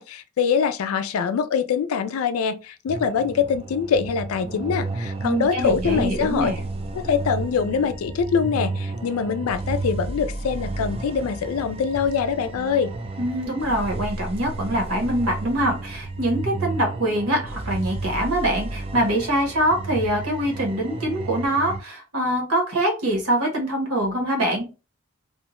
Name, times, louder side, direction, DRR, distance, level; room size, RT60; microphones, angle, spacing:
voice 1, 0.0-6.5 6.9-12.9, left 6 dB, 75° left, 0.3 m, -24 dB
sound 1, 2.9-21.8, right 2 dB, 30° right, 0.3 m, -32 dB
voice 2, 5.2-6.6 13.2-24.7, right 1 dB, 80° right, 1.0 m, -24 dB
2.6 x 2.1 x 3.0 m
head